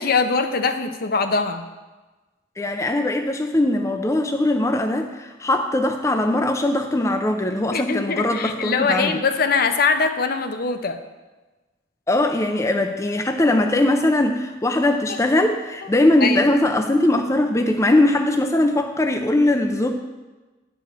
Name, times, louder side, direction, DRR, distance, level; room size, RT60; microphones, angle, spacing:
voice 1, 0.0-1.7 7.7-11.0 16.2-16.5, left 4 dB, 55° left, 8 dB, 0.7 m, -22 dB
voice 2, 2.6-9.2 12.1-19.9, left 1 dB, 15° left, 4 dB, 0.4 m, -20 dB
10.0 x 4.9 x 6.6 m, 1.2 s
head